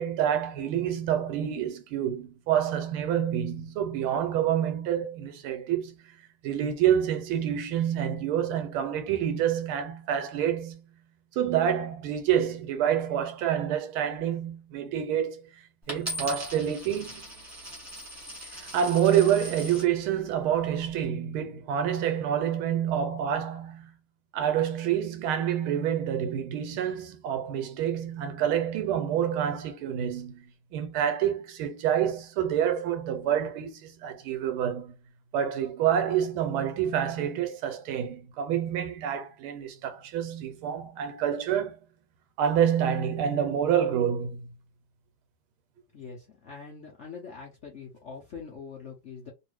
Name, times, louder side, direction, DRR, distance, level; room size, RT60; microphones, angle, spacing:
voice 1, 0.0-6.0 6.4-10.9 11.3-15.6 15.9-17.2 18.5-23.9 24.3-34.9 35.3-41.8 42.4-44.4, right 9 dB, 90° right, 1.6 m, -27 dB
Coin (dropping), 15.9-19.9 20.6-21.0, equal, 10° right, 1.0 m, -39 dB
voice 2, 45.9-49.3, left 5 dB, 80° left, 0.6 m, -43 dB
3.3 x 2.5 x 3.1 m
omnidirectional pair, 2.3 m